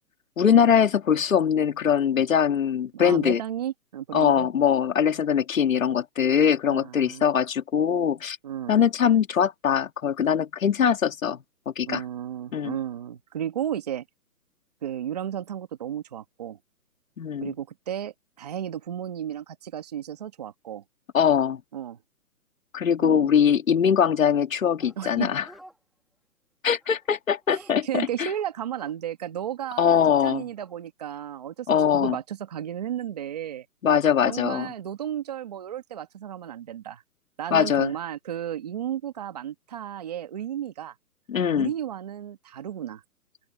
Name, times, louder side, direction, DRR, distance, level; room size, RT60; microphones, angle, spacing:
voice 1, 0.4-3.4 4.1-8.4 8.7-11.4 11.6-12.0 12.5-12.7 17.2-17.5 21.1-21.6 22.7-25.4 26.6-28.3 29.8-30.4 31.7-32.1 33.8-34.7 37.5-37.9 41.3-41.7, left 8 dB, 55° left, 1.8 m, -22 dB
voice 2, 2.9-4.5 6.7-7.3 8.4-8.8 11.9-14.0 14.8-16.6 17.4-20.8 21.7-22.0 23.0-23.3 25.0-25.3 27.5-31.7 31.9-33.6 34.3-37.0 37.4-40.9 41.5-43.0, right 10 dB, 25° right, 1.7 m, -33 dB
Dog, 24.8-25.8 26.8-28.9 29.6-29.7 30.0-30.7, right 1 dB, ahead, 1.4 m, -51 dB
open air
hypercardioid pair, 175°, 47 cm